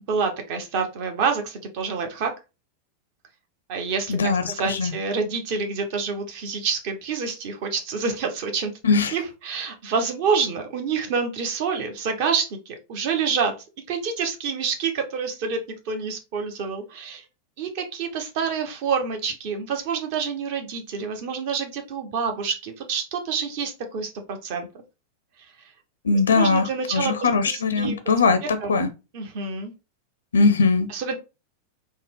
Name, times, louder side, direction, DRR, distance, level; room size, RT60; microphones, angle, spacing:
voice 1, 0.0-2.3 3.7-4.2 4.5-8.7 9.1-13.5 13.9-17.2 17.6-24.7 26.3-27.1 27.4-28.0 28.4-28.8 29.1-29.7 30.9-31.1, right 5 dB, 45° right, 0.8 m, -27 dB
voice 2, 4.1-4.9 8.8-9.1 26.0-28.4 28.7-28.9 30.3-30.9, left 4 dB, 70° left, 0.4 m, -20 dB
3.7 x 2.1 x 3.6 m
figure-of-eight pair, 90°, 0 cm